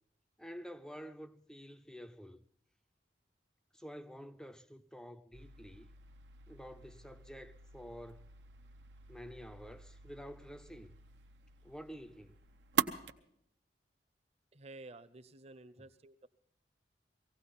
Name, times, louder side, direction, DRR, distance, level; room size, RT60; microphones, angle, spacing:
voice 1, 0.4-2.4 3.7-5.9 6.5-8.3 9.1-11.0 11.6-12.4, equal, 5° left, 0.5 m, -49 dB
sound 1, 5.3-13.1, right 6 dB, 85° right, 0.8 m, -42 dB
voice 2, 14.5-16.3, right 2 dB, 40° right, 0.8 m, -52 dB
18.0 x 16.5 x 4.2 m
head